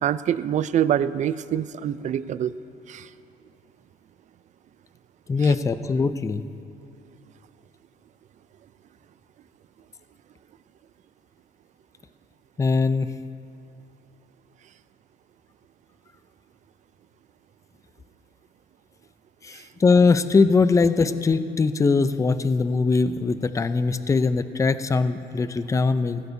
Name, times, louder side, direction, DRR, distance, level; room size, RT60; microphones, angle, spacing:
voice 1, 0.0-2.5 2.9-3.0 5.4-5.5, right 10 dB, 45° right, 15 dB, 0.4 m, -25 dB
voice 2, 5.3-6.4 12.6-13.1 19.4-26.2, left 4 dB, 20° left, 12 dB, 0.5 m, -21 dB
16.5 x 16.0 x 2.7 m, 2.6 s
cardioid pair, 110°, 17 cm